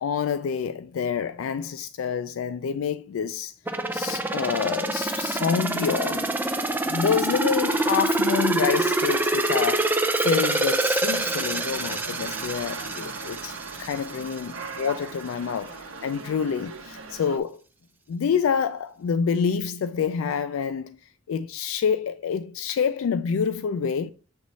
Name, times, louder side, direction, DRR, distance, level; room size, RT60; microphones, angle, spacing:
voice 1, 0.0-3.5 3.9-6.5 6.8-17.6 18.1-21.0 21.3-24.1, left 6 dB, 80° left, 0.3 m, -27 dB
sound 1, 3.7-14.4 14.8-14.9, right 2 dB, 10° right, 0.4 m, -26 dB
Dog, 11.1-17.4, right 4 dB, 75° right, 0.8 m, -39 dB
7.7 x 3.1 x 4.0 m
head